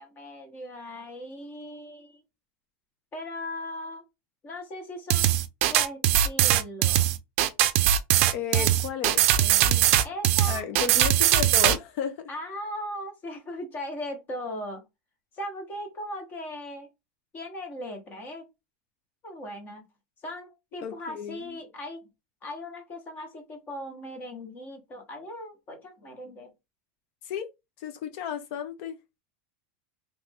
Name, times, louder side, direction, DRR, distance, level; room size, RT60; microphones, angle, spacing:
voice 1, 0.0-2.2 3.1-4.0 4.4-5.3 5.7-7.1 8.5-8.7 9.6-10.9 12.3-14.8 15.3-16.9 17.3-18.4 19.2-19.8 20.2-22.0 22.4-26.5, left 1 dB, 25° left, 1.1 m, -38 dB
sound 1, 5.1-11.8, right 12 dB, 55° right, 0.4 m, -21 dB
voice 2, 8.3-9.7 10.5-12.3 20.8-21.6 27.2-27.5 27.8-29.0, left 8 dB, 50° left, 0.6 m, -34 dB
3.1 x 2.6 x 3.5 m
supercardioid pair, 165°, 8 cm